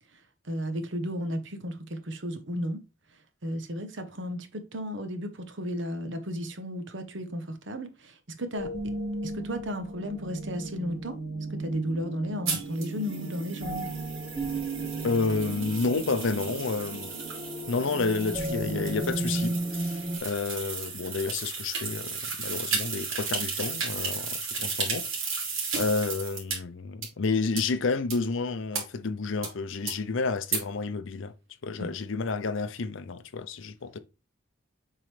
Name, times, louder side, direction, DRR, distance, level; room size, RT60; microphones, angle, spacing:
voice 1, 0.4-2.8 3.4-8.7 9.2-11.2 11.5-13.9 31.8-31.9, equal, 65° right, 1.0 m, -34 dB
sound 1, 8.5-20.2, right 2 dB, 30° right, 1.3 m, -34 dB
sound 2, 12.5-26.6 27.0-27.1 27.6-27.7 28.1-28.2 28.7-28.8 29.4-29.5 29.9-30.0 30.5-30.6, right 5 dB, 80° right, 2.7 m, -34 dB
voice 2, 15.0-17.1 17.7-25.1 25.7-31.3 31.6-34.0, left 4 dB, 70° left, 0.6 m, -30 dB
7.4 x 3.9 x 3.3 m
head